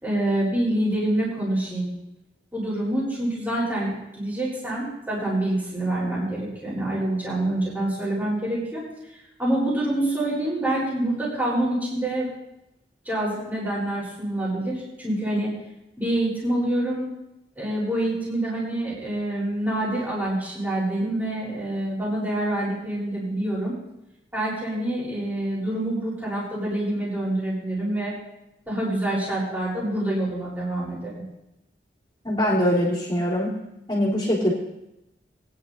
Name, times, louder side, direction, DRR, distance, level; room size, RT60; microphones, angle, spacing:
voice 1, 0.0-1.9 2.5-8.8 9.4-12.3 13.0-15.5 16.0-17.0 17.6-23.7 24.3-28.1 28.7-31.1, right 1 dB, 10° right, -8 dB, 4.1 m, -26 dB
voice 2, 32.2-33.5 33.9-34.5, equal, 25° left, -6 dB, 3.5 m, -22 dB
21.0 x 10.0 x 2.7 m, 0.91 s
head